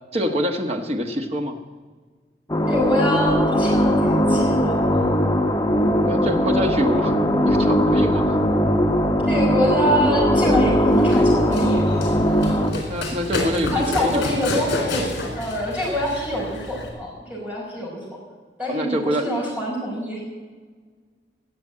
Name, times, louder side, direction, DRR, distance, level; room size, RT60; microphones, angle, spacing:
voice 1, 0.1-1.6 6.0-7.1 7.4-8.4 12.7-14.5 18.7-19.3, equal, 35° right, 4 dB, 1.3 m, -25 dB
sound 1, 2.5-12.7, equal, 20° left, 1.2 m, -19 dB
voice 2, 2.7-5.0 9.3-11.9 13.7-18.0 18.6-20.2, equal, 10° right, -4 dB, 5.4 m, -25 dB
Run, 10.9-16.9, left 2 dB, 70° left, 4.2 m, -30 dB
18.0 x 7.0 x 8.7 m, 1.5 s
head